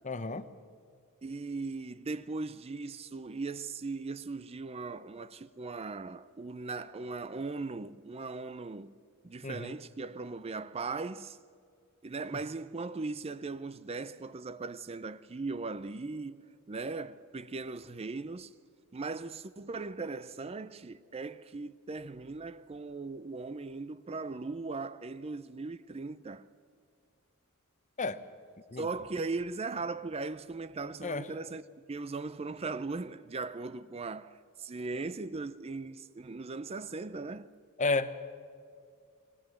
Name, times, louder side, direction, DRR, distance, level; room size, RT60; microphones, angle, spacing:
voice 1, 0.0-0.4 9.4-9.7 28.0-28.2 28.7-28.9 31.0-31.2 37.8-38.1, left 3 dB, 35° left, 0.8 m, -31 dB
voice 2, 1.2-8.9 9.2-11.4 12.0-18.5 18.9-26.5 28.8-31.6 31.9-37.5, right 3 dB, 30° right, 0.5 m, -38 dB
19.5 x 19.0 x 7.8 m
head